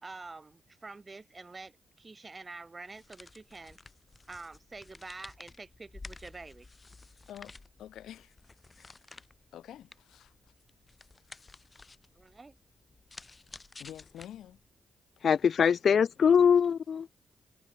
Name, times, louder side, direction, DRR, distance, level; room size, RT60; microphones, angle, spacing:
voice 1, 0.0-3.8 4.3-6.7 12.2-12.6, right 3 dB, 35° right, 4.2 m, -47 dB
sound 1, 2.8-14.7, left 3 dB, 30° left, 7.7 m, -53 dB
voice 2, 7.3-8.3 8.7-9.0 9.5-10.3 13.8-14.6, left 11 dB, 75° left, 2.7 m, -48 dB
voice 3, 15.2-17.1, left 7 dB, 60° left, 0.3 m, -23 dB
hypercardioid pair, 45°, 0 cm